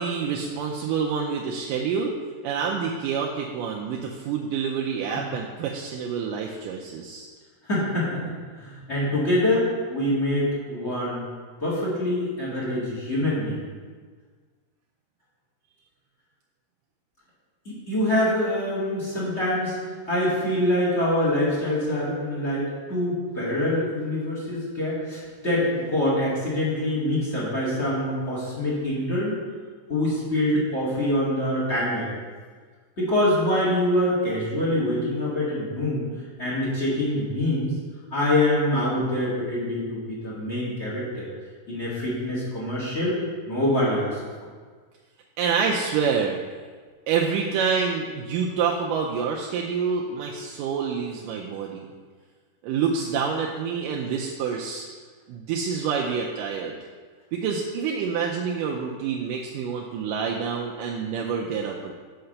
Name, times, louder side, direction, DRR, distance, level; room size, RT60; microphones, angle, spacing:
voice 1, 0.0-2.2 2.4-7.3 45.4-46.4 47.1-51.9 52.6-54.9 55.3-56.7 57.3-61.9, right 6 dB, 80° right, -1 dB, 2.1 m, -27 dB
voice 2, 7.6-8.2 8.6-11.2 11.6-13.7 17.6-19.8 20.1-29.3 29.9-32.1 33.0-36.0 36.4-37.7 38.1-41.3 41.7-43.2 43.4-44.2, left 1 dB, 25° left, -7 dB, 1.7 m, -25 dB
5.8 x 5.7 x 6.4 m, 1.5 s
omnidirectional pair, 4.1 m